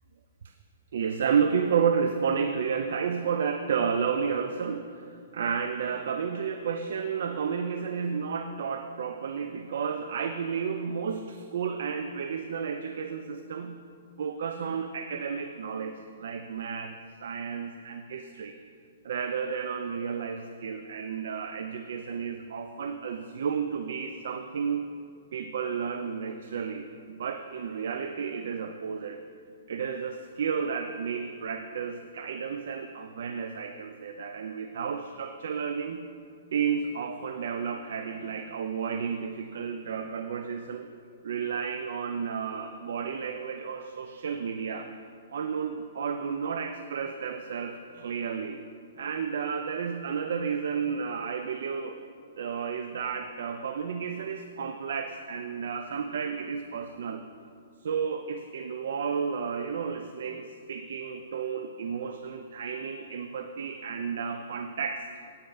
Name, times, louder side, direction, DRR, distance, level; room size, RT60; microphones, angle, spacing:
voice 1, 0.9-13.8 14.2-16.9 17.2-18.5 19.0-24.9 25.3-29.2 29.7-36.0 36.5-40.9 41.2-44.9 45.3-48.6 49.0-52.0 52.4-57.2 57.8-65.1, right 6 dB, 70° right, 7 dB, 0.5 m, -32 dB
10.0 x 8.7 x 3.9 m, 2.3 s
hypercardioid pair, 145°, 0 cm